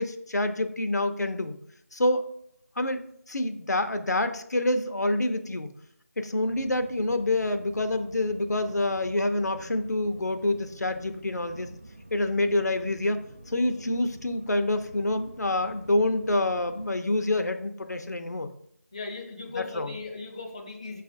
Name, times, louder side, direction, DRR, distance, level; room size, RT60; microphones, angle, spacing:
voice 1, 0.0-1.6 1.9-2.2 2.8-5.7 6.2-11.7 12.1-18.5 19.6-19.9, left 2 dB, 85° left, 8 dB, 0.5 m, -27 dB
sound 1, 6.5-16.9, right 1 dB, 45° right, 0.5 m, -48 dB
voice 2, 18.9-21.0, left 4 dB, 25° left, 0 dB, 0.4 m, -38 dB
5.6 x 2.3 x 2.6 m, 0.68 s
figure-of-eight pair, 165°, 9 cm